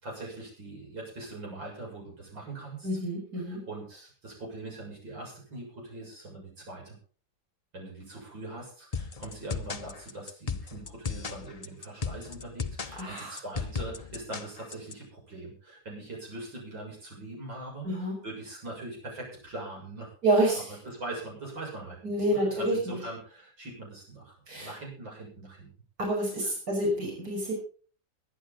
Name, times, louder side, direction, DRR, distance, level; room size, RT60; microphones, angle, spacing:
voice 1, 0.0-2.9 3.5-7.0 7.7-17.9 18.2-25.7 26.4-26.5, right 2 dB, 80° right, -2 dB, 7.7 m, -42 dB
voice 2, 2.8-3.6 13.0-13.4 17.8-18.2 20.2-20.7 22.0-23.0 24.5-24.8 26.0-27.6, right 1 dB, 50° right, -1 dB, 6.1 m, -28 dB
sound 1, 8.9-14.9, left 5 dB, 45° left, 0.5 m, -35 dB
23.0 x 9.9 x 3.9 m, 0.40 s
omnidirectional pair, 2.0 m